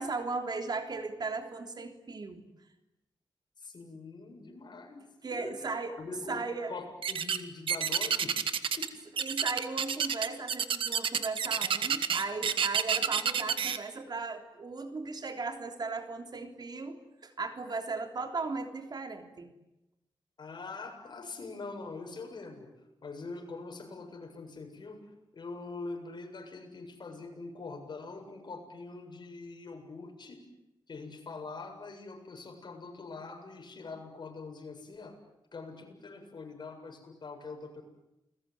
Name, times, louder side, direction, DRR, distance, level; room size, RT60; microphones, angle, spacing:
voice 1, 0.0-2.4 5.2-6.0 6.3-6.7 9.2-19.5, right 3 dB, 50° right, 6 dB, 3.4 m, -37 dB
voice 2, 3.6-5.0 5.3-5.5 5.9-6.4 6.7-8.3 8.8-8.9 20.4-22.7 23.0-30.4 30.9-35.2 35.5-37.8, left 3 dB, 55° left, 4 dB, 7.5 m, -43 dB
sound 1, 7.0-7.4 7.7-8.9 9.2-13.8, right 7 dB, 85° right, 1.6 m, -29 dB
29.5 x 21.0 x 9.5 m, 0.90 s
cardioid pair, 75°, 9 cm